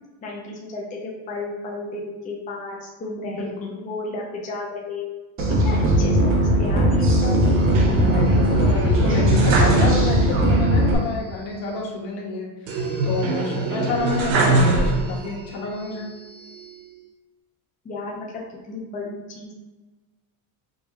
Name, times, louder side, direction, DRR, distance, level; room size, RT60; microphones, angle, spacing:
voice 1, 0.2-5.1 5.6-7.4 17.8-18.3 18.7-19.5, left 3 dB, 15° left, -2 dB, 0.5 m, -33 dB
voice 2, 3.2-3.8 5.7-5.9 8.0-16.1, left 4 dB, 60° left, -2 dB, 1.3 m, -29 dB
sound 1, 5.4-10.9, right 1 dB, 25° right, 0.7 m, -19 dB
sound 2, 7.4-10.5 10.8-10.9 12.7-15.4 15.9-16.8, right 2 dB, 85° right, 1.1 m, -23 dB
5.3 x 2.8 x 2.3 m, 1.2 s
supercardioid pair, 125°, 49 cm